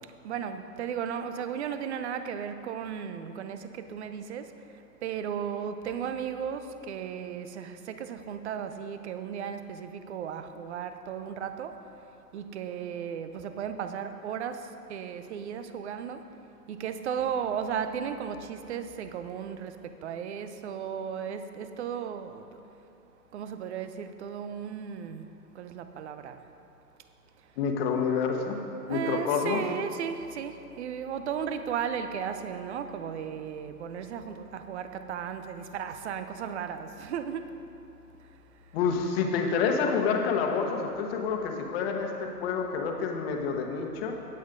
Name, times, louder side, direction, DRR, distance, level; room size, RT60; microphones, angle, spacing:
voice 1, 0.0-11.9 12.3-16.3 16.7-22.6 23.3-26.5 27.4-27.5 28.8-37.6 38.1-38.9, right 8 dB, 45° right, 9 dB, 0.7 m, -35 dB
voice 2, 27.6-29.6 38.7-44.2, left 5 dB, 40° left, 3 dB, 1.2 m, -28 dB
17.5 x 7.8 x 2.6 m, 2.7 s
figure-of-eight pair, 115°, 48 cm